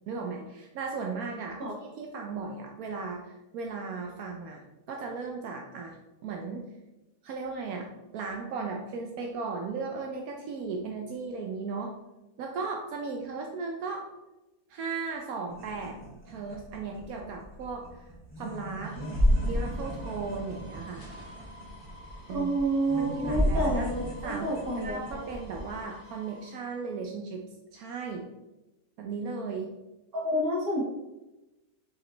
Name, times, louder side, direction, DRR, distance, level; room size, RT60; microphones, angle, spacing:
voice 1, 0.1-6.0 6.2-6.7 7.2-7.9 8.1-11.9 12.4-14.0 14.7-16.0 16.3-18.1 18.4-19.0 19.4-21.0 22.3-22.5 23.0-23.9 24.2-27.4 27.7-28.2 29.0-29.7, right 4 dB, 75° right, 1 dB, 1.1 m, -36 dB
sound 1, 15.5-25.7, equal, 10° right, 1.7 m, -32 dB
sound 2, 18.8-26.8, equal, 80° left, 2.1 m, -50 dB
voice 2, 22.3-25.3 30.1-30.8, right 1 dB, 40° right, -4 dB, 1.8 m, -29 dB
5.8 x 5.1 x 3.2 m, 1.0 s
omnidirectional pair, 1.5 m